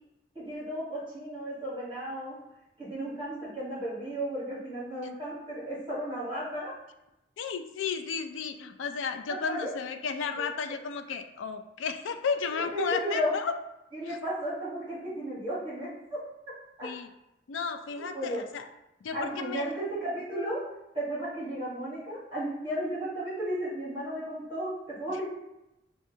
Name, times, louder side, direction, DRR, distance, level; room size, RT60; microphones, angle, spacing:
voice 1, 0.3-2.3 2.8-6.7 9.3-9.7 10.4-10.5 12.4-13.3 13.9-16.2 16.8-16.9 17.9-18.4 19.1-20.6 20.9-25.3, right 1 dB, 25° right, -9 dB, 1.3 m, -34 dB
voice 2, 7.4-13.5 14.1-14.2 16.8-17.1 17.5-18.6 19.0-19.7, left 6 dB, 90° left, 8 dB, 0.4 m, -33 dB
6.1 x 2.3 x 2.7 m, 0.92 s
head